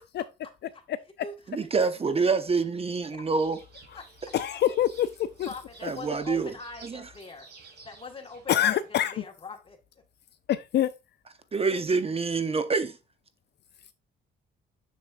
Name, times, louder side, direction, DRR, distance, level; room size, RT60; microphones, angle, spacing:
voice 1, 1.5-3.6 5.8-6.5 6.8-7.0 11.5-13.0, right 4 dB, 30° right, 0.7 m, -26 dB
sound 1, 3.4-9.0, right 4 dB, 60° right, 3.1 m, -53 dB
voice 2, 4.3-5.5 8.5-9.1 10.5-10.9, left 11 dB, 60° left, 0.4 m, -25 dB
voice 3, 5.4-7.5 7.8-9.8, left 4 dB, 25° left, 1.6 m, -42 dB
6.7 x 6.6 x 2.5 m
cardioid pair, 90°, 20 cm